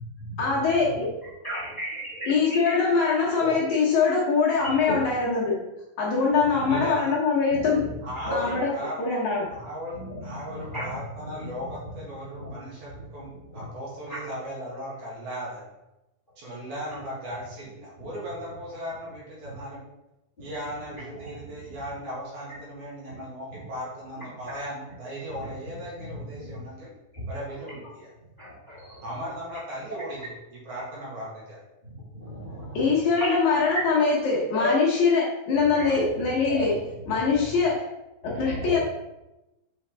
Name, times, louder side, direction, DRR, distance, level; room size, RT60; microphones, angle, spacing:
voice 1, 0.4-1.1 2.3-5.6 6.0-7.9 8.3-9.5 32.7-37.8 38.2-38.8, left 4 dB, 65° left, -5 dB, 2.3 m, -23 dB
voice 2, 1.4-2.3 7.5-7.7 10.0-10.1 10.7-10.8 11.4-11.5 13.5-13.6 28.4-29.0 32.2-32.8 34.6-34.7 35.8-35.9 36.5-36.6 38.2-38.7, left 1 dB, 20° left, -9 dB, 1.6 m, -34 dB
voice 3, 6.6-7.1 8.0-9.2 9.5-15.6 16.4-19.8 20.4-26.9 27.3-28.1 29.0-31.6, equal, 60° right, -6 dB, 3.1 m, -37 dB
6.2 x 5.4 x 3.4 m, 0.95 s
omnidirectional pair, 4.1 m